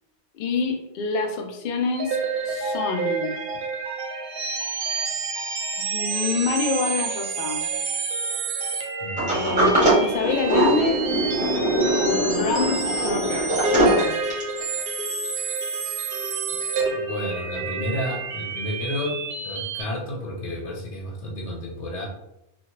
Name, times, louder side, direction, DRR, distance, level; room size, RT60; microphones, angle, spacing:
voice 1, 0.3-2.2 2.4-3.4 5.8-7.7 9.3-11.0 12.0-14.2, left 4 dB, 60° left, 3 dB, 0.6 m, -27 dB
sound 1, 1.9-19.8, right 4 dB, 65° right, 0.7 m, -29 dB
voice 2, 9.0-9.4 16.9-19.2 19.4-22.1, left 1 dB, 90° left, -1 dB, 1.1 m, -31 dB
Sliding door, 9.2-14.6, right 1 dB, 5° right, 0.9 m, -22 dB
3.0 x 2.4 x 2.8 m, 0.85 s
omnidirectional pair, 1.1 m